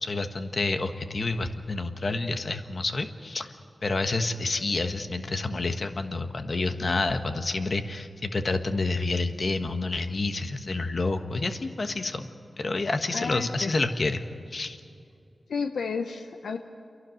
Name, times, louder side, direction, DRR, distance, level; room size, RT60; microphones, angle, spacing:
voice 1, 0.0-3.5 3.8-12.3 12.6-14.2 14.5-14.8, left 3 dB, 60° left, 7 dB, 1.4 m, -29 dB
voice 2, 13.1-13.7 15.5-16.6, left 5 dB, 90° left, 6 dB, 0.7 m, -31 dB
28.5 x 11.5 x 9.4 m, 2.5 s
cardioid pair, 40°, 0 cm